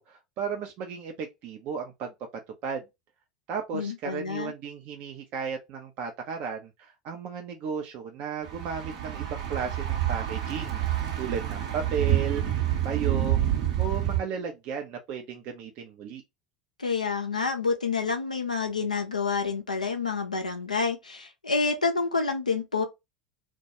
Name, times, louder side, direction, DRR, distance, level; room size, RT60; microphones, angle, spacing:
voice 1, 0.0-2.1 2.6-2.8 3.5-12.4 12.8-13.5 13.8-16.2, right 6 dB, 45° right, 0.5 m, -34 dB
voice 2, 3.7-4.5 16.8-22.8, left 4 dB, 90° left, 0.4 m, -28 dB
Thunder / Bicycle, 8.4-14.2, right 11 dB, 65° right, 0.8 m, -28 dB
2.2 x 2.2 x 2.8 m
figure-of-eight pair, 80°, 4 cm